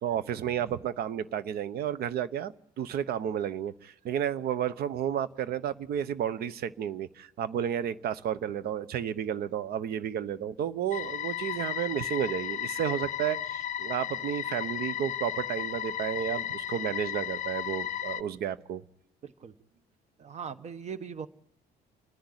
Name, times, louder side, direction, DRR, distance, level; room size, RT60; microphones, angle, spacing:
voice 1, 0.0-18.8, right 9 dB, 65° right, 16 dB, 0.9 m, -32 dB
sound 1, 10.9-18.2, left 10 dB, 45° left, 0.7 m, -34 dB
voice 2, 19.2-19.5 20.2-21.3, right 6 dB, 40° right, 12 dB, 1.2 m, -40 dB
28.5 x 10.5 x 9.9 m, 0.79 s
cardioid pair, 110°, 17 cm